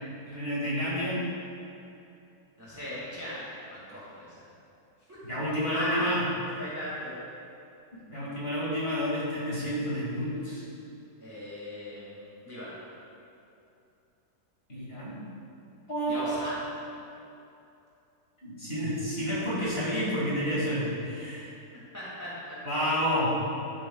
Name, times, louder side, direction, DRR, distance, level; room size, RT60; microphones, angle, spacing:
voice 1, 0.3-1.2 5.2-6.2 7.9-10.6 14.7-15.2 15.9-16.5 18.4-21.5 22.7-23.4, equal, 35° left, -8 dB, 2.3 m, -30 dB
voice 2, 2.6-3.4 3.7-4.5 5.1-5.2 5.7-6.1 6.6-7.2 11.2-12.8 16.1-16.6 19.6-19.7 21.9-22.6, equal, 10° right, -8 dB, 1.8 m, -38 dB
11.5 x 7.8 x 2.3 m, 2.7 s
omnidirectional pair, 1.8 m